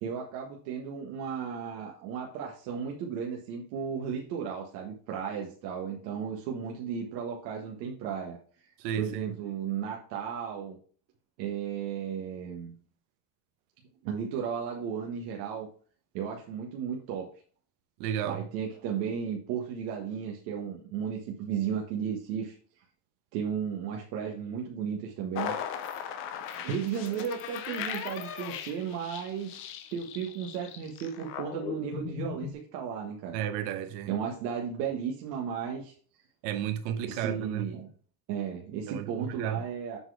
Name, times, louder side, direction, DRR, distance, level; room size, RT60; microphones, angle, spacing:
voice 1, 0.0-8.4 9.0-10.8 11.4-12.7 14.0-15.7 16.1-17.3 18.2-22.5 23.3-25.5 26.6-29.6 29.9-33.4 34.1-35.9 37.0-37.9 38.3-40.0, right 7 dB, 85° right, 1.5 m, -34 dB
voice 2, 8.8-9.3 18.0-18.4 33.3-34.1 36.4-37.7 38.9-39.6, right 9 dB, 65° right, 1.0 m, -33 dB
sound 1, 25.3-32.5, left 8 dB, 30° left, 0.4 m, -38 dB
7.8 x 4.1 x 4.8 m
cardioid pair, 180°, 48 cm